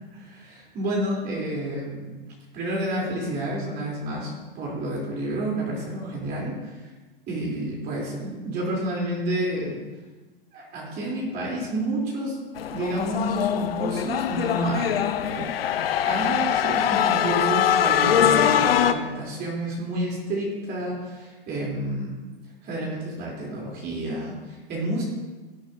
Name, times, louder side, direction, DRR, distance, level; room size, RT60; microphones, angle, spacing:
voice 1, 0.1-2.1 2.5-6.8 7.3-9.8 10.5-12.4 12.7-15.5 16.0-22.2 22.6-25.0, right 1 dB, 35° right, -4 dB, 3.6 m, -30 dB
sound 1, 12.6-18.9, left 9 dB, 80° left, 0.7 m, -22 dB
16.5 x 8.7 x 2.8 m, 1.2 s
hypercardioid pair, 115°, 29 cm